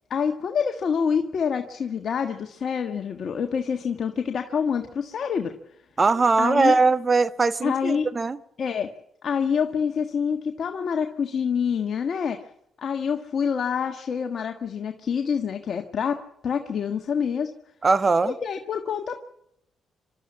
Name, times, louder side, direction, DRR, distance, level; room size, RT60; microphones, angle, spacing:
voice 1, 0.1-5.5 6.4-6.8 7.6-8.1 8.6-8.9 9.2-12.4 12.8-17.5 18.2-19.2, left 6 dB, 60° left, 5 dB, 1.5 m, -26 dB
voice 2, 6.0-8.4 17.8-18.3, right 3 dB, 35° right, 13 dB, 1.3 m, -20 dB
26.0 x 13.0 x 8.5 m, 0.77 s
supercardioid pair, 65°, 0 cm